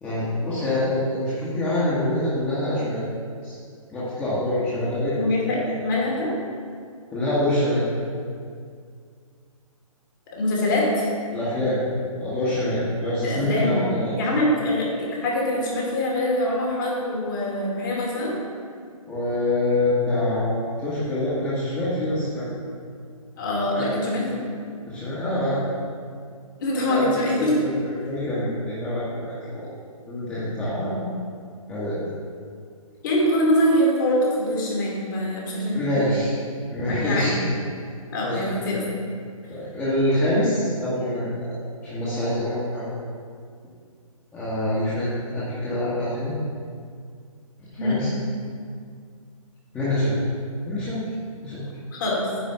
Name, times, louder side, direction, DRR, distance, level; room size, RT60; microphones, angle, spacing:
voice 1, 0.0-3.0 3.4-3.6 3.9-5.2 7.1-7.8 11.3-11.8 12.1-14.2 19.1-22.5 23.7-23.9 24.9-25.7 26.9-27.1 27.4-29.7 30.1-31.0 31.7-32.0 35.7-36.4 36.7-37.5 38.2-38.4 39.5-42.9 44.3-46.3 47.8-48.1 49.7-50.2 50.6-51.0 51.4-51.6, left 1 dB, 10° left, -10 dB, 1.7 m, -25 dB
voice 2, 5.1-6.3 10.3-11.0 13.2-13.8 14.2-18.3 23.4-24.4 26.6-27.6 30.7-31.1 33.0-35.8 37.0-37.3 38.1-38.8 47.8-48.0 51.9-52.3, left 1 dB, 35° left, -3 dB, 2.4 m, -24 dB
9.6 x 5.0 x 6.7 m, 2.1 s
figure-of-eight pair, 130°, 18 cm